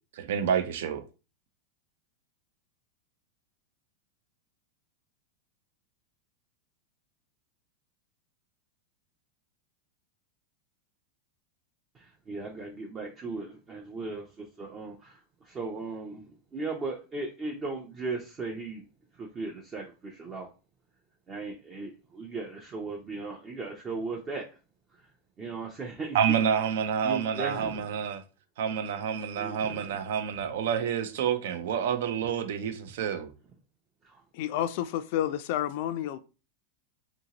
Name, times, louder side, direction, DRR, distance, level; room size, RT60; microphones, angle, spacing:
voice 1, 0.2-1.0 26.1-28.2 28.6-33.3, right 8 dB, 70° right, 0.5 m, -28 dB
voice 2, 11.9-18.8 19.1-20.5 21.3-24.5 24.9-25.1 25.4-26.4 27.0-27.9 29.4-30.0 34.0-34.2, right 3 dB, 25° right, 0.5 m, -37 dB
voice 3, 34.3-36.2, left 11 dB, 60° left, 0.3 m, -30 dB
2.8 x 2.7 x 2.8 m
supercardioid pair, 135°, 0 cm